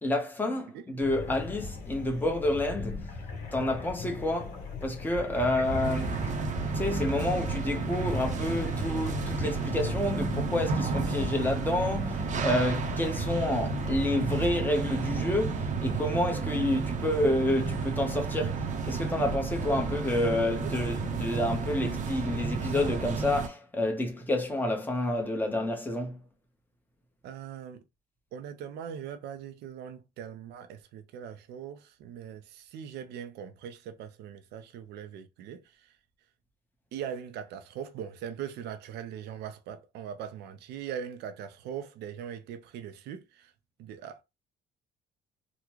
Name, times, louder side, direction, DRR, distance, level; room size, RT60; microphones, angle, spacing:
voice 1, 0.0-3.2 3.5-6.1 6.7-26.2, left 1 dB, 10° left, 1.0 m, -29 dB
sound 1, 1.0-14.5, left 4 dB, 65° left, 1.0 m, -38 dB
sound 2, 5.6-23.5, right 5 dB, 45° right, 0.8 m, -32 dB
voice 2, 27.2-27.8 28.3-35.9 36.9-43.5 43.8-44.2, right 8 dB, 80° right, 0.6 m, -41 dB
3.6 x 2.2 x 3.0 m
cardioid pair, 110°, 17 cm